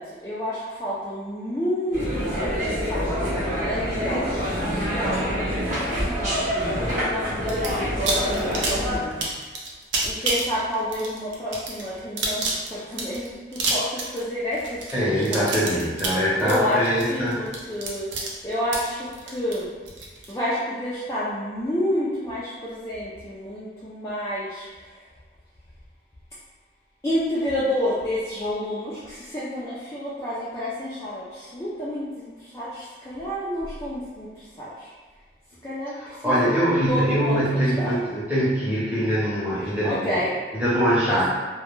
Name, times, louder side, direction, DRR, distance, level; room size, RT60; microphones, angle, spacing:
voice 1, 0.0-3.2 3.6-6.5 6.9-9.3 10.0-15.5 16.4-19.7 20.3-24.9 27.0-34.9 35.6-36.5 36.9-37.9 39.7-40.4 41.1-41.3, equal, 15° left, -10 dB, 0.3 m, -30 dB
sound 1, 1.9-9.0, equal, 45° right, 0.7 m, -26 dB
sound 2, 7.5-7.7 8.1-20.3, right 3 dB, 80° right, 0.5 m, -29 dB
voice 2, 14.9-17.4 36.0-40.2 40.5-41.3, equal, 10° right, -9 dB, 0.7 m, -23 dB
2.1 x 2.1 x 3.0 m, 1.4 s
head